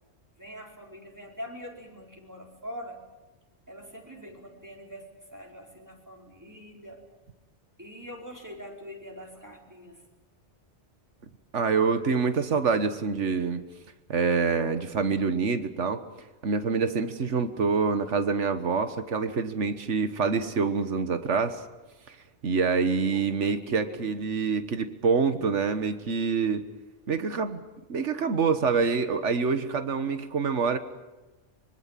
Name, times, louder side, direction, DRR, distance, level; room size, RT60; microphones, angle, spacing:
voice 1, 0.4-3.0 3.7-7.0 7.8-10.0 23.1-24.2, equal, 15° right, 0 dB, 4.8 m, -44 dB
voice 2, 11.5-13.6 14.1-16.0 16.4-21.6 22.1-22.2 22.4-26.6 27.1-27.6 27.9-30.8, right 5 dB, 90° right, 10 dB, 1.7 m, -26 dB
25.0 x 23.0 x 7.6 m, 1.1 s
omnidirectional pair, 1.2 m